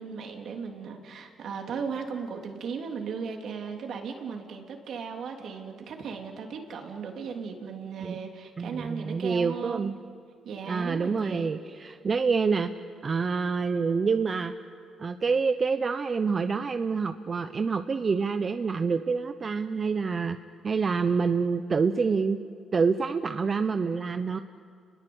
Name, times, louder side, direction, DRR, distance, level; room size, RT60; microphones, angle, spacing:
voice 1, 0.0-9.9 10.4-11.6, right 6 dB, 70° right, 2 dB, 3.3 m, -36 dB
voice 2, 8.6-9.9 10.7-12.7 13.0-14.5 15.0-20.4 20.6-22.4 22.7-24.4, right 5 dB, 40° right, 9 dB, 0.8 m, -27 dB
29.5 x 21.0 x 8.0 m, 2.2 s
cardioid pair, 90°, 0 cm